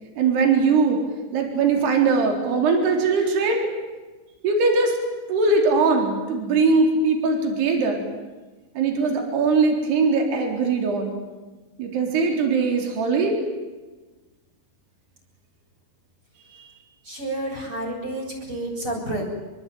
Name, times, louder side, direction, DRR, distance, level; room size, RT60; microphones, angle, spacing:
voice 1, 0.2-1.0 1.3-3.6 4.4-4.9 5.3-8.1 8.8-11.1 11.8-13.4 16.5-16.6, right 4 dB, 65° right, 2 dB, 5.9 m, -21 dB
voice 2, 17.0-19.3, right 1 dB, 30° right, 3 dB, 8.6 m, -30 dB
26.0 x 22.5 x 9.3 m, 1.2 s
omnidirectional pair, 5.1 m